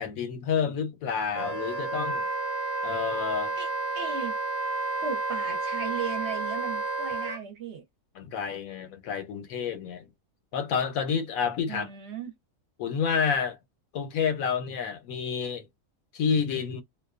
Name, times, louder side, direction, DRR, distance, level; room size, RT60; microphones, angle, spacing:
voice 1, 0.0-2.3 2.8-3.6 8.1-10.1 10.5-11.9 12.8-13.6 13.9-15.7 16.1-16.8, left 6 dB, 85° left, 1.1 m, -29 dB
Wind instrument woodwind instrument, 1.3-7.4, right 3 dB, 15° right, 0.6 m, -31 dB
voice 2, 3.6-4.4 5.0-7.8 11.7-12.3, right 7 dB, 60° right, 0.9 m, -36 dB
2.5 x 2.2 x 2.3 m
omnidirectional pair, 1.5 m